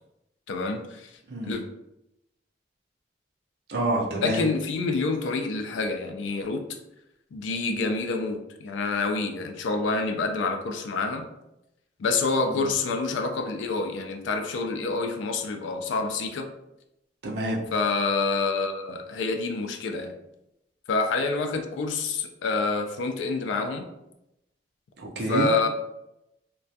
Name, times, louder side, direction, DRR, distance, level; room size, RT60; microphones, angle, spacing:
voice 1, 0.5-1.1 1.4-1.6 4.2-6.6 7.3-11.3 12.0-16.5 17.7-20.1 20.9-23.9 25.3-25.7, left 3 dB, 85° left, 5 dB, 0.4 m, -27 dB
voice 2, 3.7-4.4 12.4-12.6 17.2-17.6 25.0-25.5, right 1 dB, 60° right, -1 dB, 0.5 m, -28 dB
2.2 x 2.2 x 2.6 m, 0.88 s
head